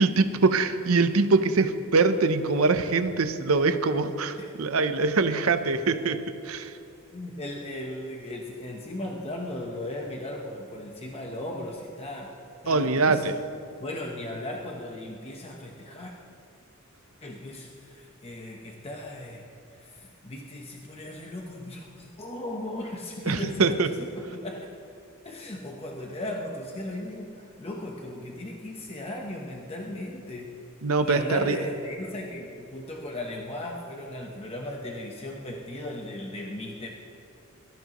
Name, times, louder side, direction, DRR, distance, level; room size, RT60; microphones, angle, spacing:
voice 1, 0.0-6.7 12.7-13.3 23.3-23.9 30.8-31.6, right 3 dB, 80° right, 9 dB, 0.8 m, -23 dB
voice 2, 7.1-12.4 12.6-13.5 13.8-16.1 17.2-19.5 19.7-24.7 25.2-30.6 31.0-36.9, left 1 dB, 30° left, 0 dB, 1.0 m, -37 dB
23.0 x 13.5 x 3.1 m, 2.6 s
head